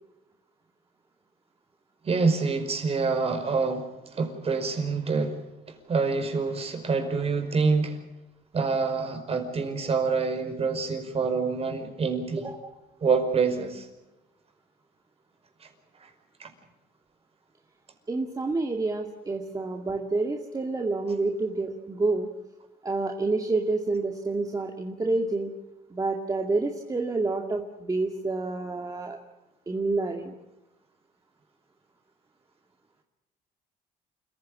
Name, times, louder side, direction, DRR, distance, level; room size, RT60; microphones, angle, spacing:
voice 1, 2.0-3.9 4.1-8.0 8.5-12.5 13.0-13.9 15.6-15.7 16.0-16.1 16.4-16.5, right 4 dB, 35° right, 6 dB, 5.3 m, -26 dB
voice 2, 18.1-22.3 22.8-25.5 25.9-29.2 29.7-30.3, right 3 dB, 20° right, 2 dB, 2.3 m, -28 dB
28.5 x 15.0 x 8.7 m, 1.0 s
cardioid pair, 110°, 17 cm